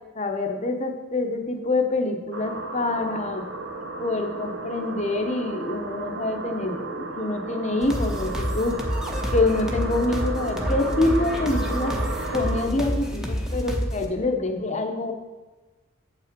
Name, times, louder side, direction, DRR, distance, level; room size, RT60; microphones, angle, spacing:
voice 1, 0.1-3.5 4.0-9.0 9.3-12.0 12.3-15.1, left 2 dB, 35° left, 5 dB, 0.9 m, -26 dB
sound 1, 2.3-12.7, right 3 dB, 70° right, 1.0 m, -34 dB
sound 2, 7.8-14.1, equal, 5° right, 0.9 m, -28 dB
7.7 x 5.7 x 5.1 m, 1.2 s
head